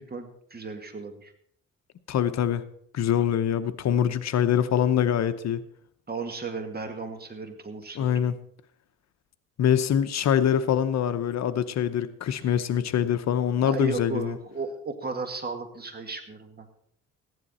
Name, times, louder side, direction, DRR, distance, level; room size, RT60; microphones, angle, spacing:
voice 1, 0.0-1.3 6.1-8.2 12.4-12.5 13.6-16.7, right 4 dB, 30° right, 6 dB, 2.0 m, -35 dB
voice 2, 2.1-2.6 2.9-5.6 8.0-8.4 9.6-14.4, left 9 dB, 60° left, 12 dB, 0.8 m, -24 dB
15.0 x 10.5 x 4.2 m, 0.66 s
cardioid pair, 90°, 30 cm